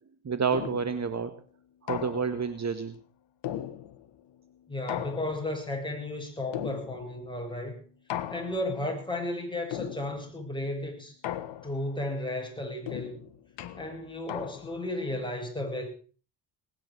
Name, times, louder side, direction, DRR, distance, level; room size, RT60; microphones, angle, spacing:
voice 1, 0.2-1.3 1.8-3.0, right 6 dB, 35° right, 11 dB, 1.7 m, -29 dB
sound 1, 0.5-1.1 1.9-2.5 3.4-4.2 4.9-5.7 6.5-7.2 8.1-8.8 9.7-10.4 11.2-12.0 12.9-14.9, left 11 dB, 65° left, 1.6 m, -37 dB
voice 2, 4.7-7.8 8.3-11.2 11.6-13.2 13.7-15.9, left 1 dB, 10° left, 2 dB, 7.9 m, -34 dB
19.0 x 10.5 x 6.6 m, 0.39 s
hypercardioid pair, 55°, 46 cm